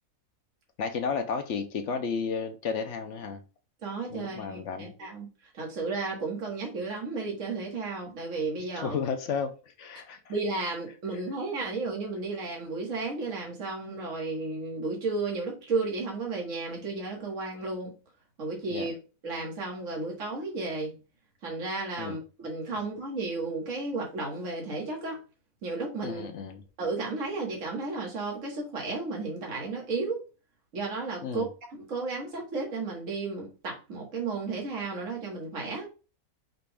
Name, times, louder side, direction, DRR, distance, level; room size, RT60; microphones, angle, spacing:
voice 1, 0.8-3.4 4.1-4.9 8.8-10.2 18.7-18.9 22.0-22.2 26.0-26.6 31.2-31.5, left 5 dB, 65° left, 0.9 m, -33 dB
voice 2, 3.8-5.3 5.5-9.0 10.3-17.9 18.4-18.9 19.2-20.9 21.4-25.2 25.6-26.2 26.8-30.2 30.7-31.5 31.9-35.9, right 3 dB, 60° right, 1.8 m, -33 dB
5.8 x 2.4 x 3.4 m
omnidirectional pair, 1.5 m